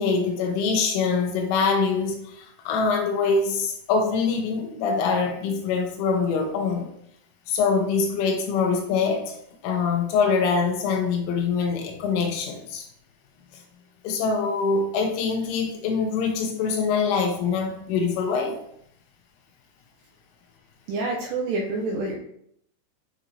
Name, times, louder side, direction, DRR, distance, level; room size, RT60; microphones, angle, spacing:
voice 1, 0.0-6.9 7.5-9.4 9.6-12.9 14.0-18.6, left 5 dB, 85° left, 3 dB, 3.5 m, -24 dB
voice 2, 20.9-22.2, right 3 dB, 80° right, -2 dB, 2.5 m, -27 dB
8.8 x 4.3 x 2.7 m, 0.70 s
omnidirectional pair, 5.6 m